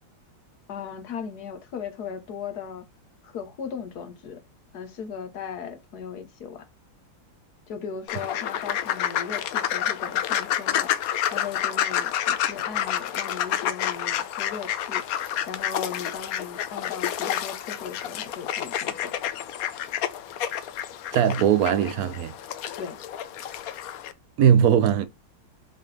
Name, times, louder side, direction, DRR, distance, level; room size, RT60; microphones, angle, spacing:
voice 1, 0.7-2.8 3.2-4.4 4.7-6.6 7.7-10.9 11.3-15.0 15.5-19.1 22.8-23.0, left 7 dB, 55° left, 1.5 m, -37 dB
sound 1, 8.1-24.1, left 10 dB, 85° left, 0.8 m, -29 dB
voice 2, 21.1-22.3 24.4-25.1, right 9 dB, 80° right, 0.8 m, -19 dB
7.8 x 3.8 x 3.3 m
omnidirectional pair, 2.3 m